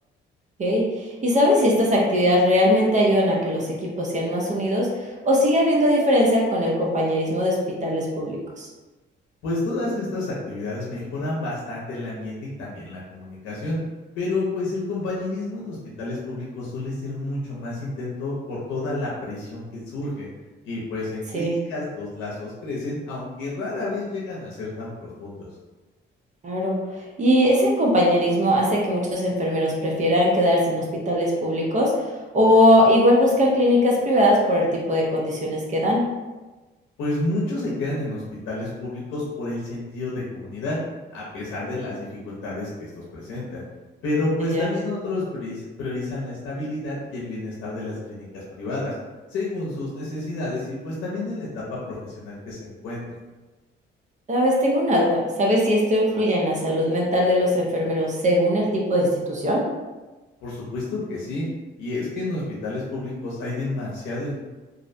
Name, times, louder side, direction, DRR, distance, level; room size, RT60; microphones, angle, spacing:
voice 1, 0.6-3.7 4.0-7.6 7.8-8.7 21.3-21.5 26.4-31.9 32.3-36.0 44.4-44.7 54.3-59.6, equal, 40° right, -2 dB, 0.6 m, -20 dB
voice 2, 9.4-13.8 14.1-20.3 20.6-25.4 37.0-40.8 41.1-43.6 44.0-49.0 49.3-53.0 60.4-61.4 61.8-64.3, left 2 dB, 90° left, -5 dB, 0.6 m, -30 dB
2.4 x 2.0 x 2.5 m, 1.2 s
cardioid pair, 90°, 20 cm